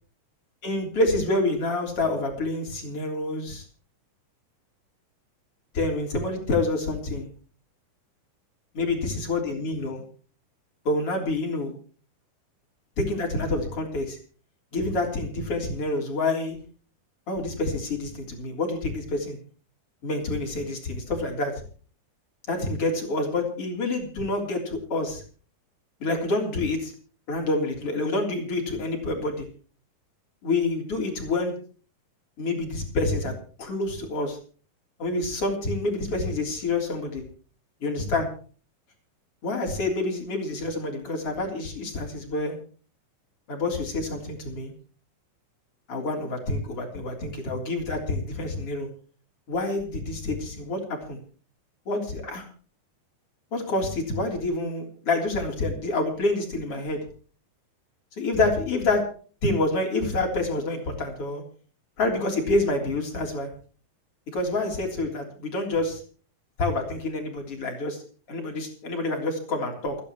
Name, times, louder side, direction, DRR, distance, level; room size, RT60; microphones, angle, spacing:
voice 1, 0.6-3.6 5.7-7.3 8.7-10.0 10.9-11.8 13.0-14.2 14.7-16.6 17.3-19.4 20.0-21.5 22.5-25.2 26.0-26.9 27.3-29.5 30.4-31.5 32.4-33.3 33.6-34.4 35.0-37.2 37.8-38.3 39.4-42.6 43.5-44.7 45.9-48.9 49.5-51.2 51.9-52.4 53.5-57.0 58.2-59.0 59.4-61.4 62.0-63.5 64.3-66.0 66.6-68.0 68.3-70.0, left 2 dB, 45° left, 1 dB, 4.4 m, -27 dB
28.5 x 10.0 x 3.1 m, 0.40 s
omnidirectional pair, 3.8 m